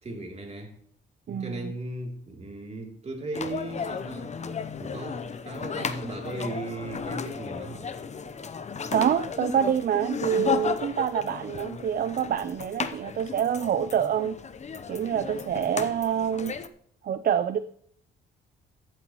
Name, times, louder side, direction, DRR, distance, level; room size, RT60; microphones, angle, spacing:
voice 1, 0.0-0.7 1.3-4.3 4.8-7.9, right 2 dB, 35° right, 3.0 m, -37 dB
voice 2, 1.3-1.7 8.9-14.4 14.9-16.5 17.0-17.6, right 8 dB, 50° right, 0.5 m, -26 dB
sound 1, 3.3-16.7, left 6 dB, 35° left, 0.8 m, -34 dB
15.0 x 7.8 x 3.0 m
cardioid pair, 90°, 20 cm